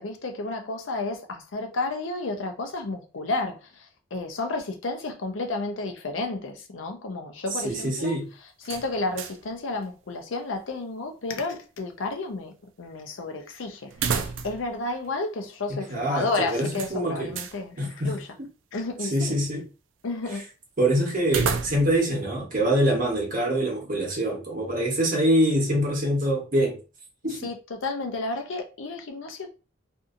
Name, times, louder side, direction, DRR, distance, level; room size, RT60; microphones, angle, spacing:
voice 1, 0.0-8.2 8.6-18.3 18.7-19.4 20.0-20.5 27.4-29.5, left 3 dB, 85° left, 0.6 m, -32 dB
voice 2, 7.6-8.3 15.7-17.4 17.8-18.2 19.1-19.6 20.8-26.8 27.2-27.5, right 1 dB, 45° right, 1.0 m, -24 dB
sound 1, 8.6-9.5 9.8-9.9 13.9-14.7 15.0-15.1 16.7-17.6 21.2-22.1, right 6 dB, 80° right, 0.4 m, -30 dB
2.6 x 2.6 x 2.5 m
head